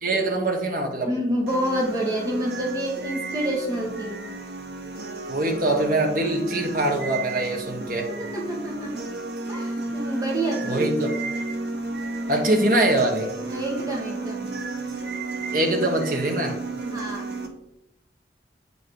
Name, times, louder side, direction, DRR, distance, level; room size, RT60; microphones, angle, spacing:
voice 1, 0.0-1.1 5.3-8.1 10.6-11.1 12.3-13.3 15.5-16.6, right 1 dB, 50° right, 3 dB, 1.5 m, -23 dB
voice 2, 1.0-4.2 8.2-9.0 9.5-10.9 13.5-14.5 16.8-17.3, right 1 dB, 20° right, -2 dB, 1.6 m, -28 dB
sound 1, 1.5-17.5, right 2 dB, 70° right, 1.4 m, -32 dB
8.8 x 5.6 x 4.8 m, 0.86 s
head